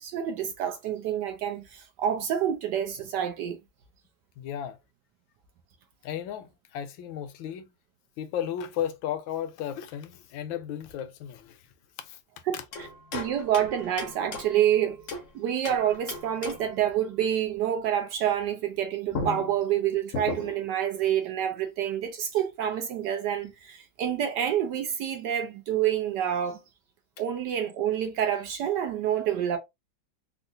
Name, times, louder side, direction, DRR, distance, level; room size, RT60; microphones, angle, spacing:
voice 1, 0.0-3.6 12.5-12.6 13.1-15.0 15.3-26.6 27.2-29.6, right 10 dB, 70° right, 1.0 m, -28 dB
voice 2, 4.4-4.8 6.0-7.7 8.2-11.6 12.0-12.2 12.5-12.6 13.1-13.3, left 10 dB, 75° left, 1.3 m, -34 dB
sound 1, 12.7-15.3 15.6-16.8 18.7-18.8 19.1-20.8, left 3 dB, 60° left, 0.8 m, -37 dB
3.7 x 2.4 x 2.6 m
omnidirectional pair, 2.2 m